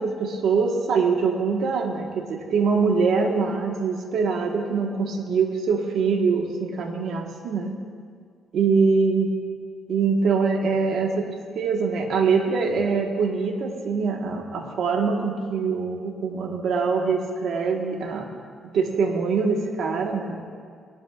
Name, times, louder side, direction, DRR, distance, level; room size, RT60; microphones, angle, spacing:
voice 1, 0.0-7.7 8.5-9.3 9.9-18.3 18.6-20.3, right 5 dB, 70° right, 2 dB, 1.4 m, -23 dB
18.0 x 11.5 x 2.4 m, 2.1 s
cardioid pair, 90°, 0 cm